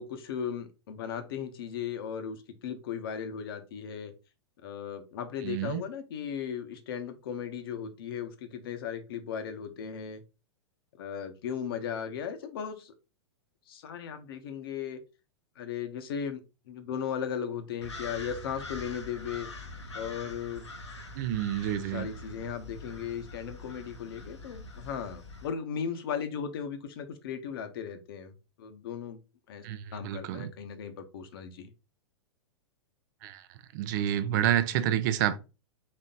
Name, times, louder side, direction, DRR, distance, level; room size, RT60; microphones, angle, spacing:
voice 1, 0.0-4.1 4.6-10.2 11.0-12.9 13.7-15.0 15.6-16.4 16.7-19.5 19.9-20.6 21.8-29.2 29.5-29.6 29.9-31.7, left 7 dB, 55° left, 0.9 m, -37 dB
voice 2, 5.4-5.9 21.2-22.1 29.6-30.5 33.2-33.5 33.7-35.4, right 11 dB, 45° right, 0.6 m, -29 dB
sound 1, 17.8-25.5, left 2 dB, 75° left, 1.0 m, -44 dB
4.3 x 3.1 x 3.8 m
figure-of-eight pair, 100°, 15 cm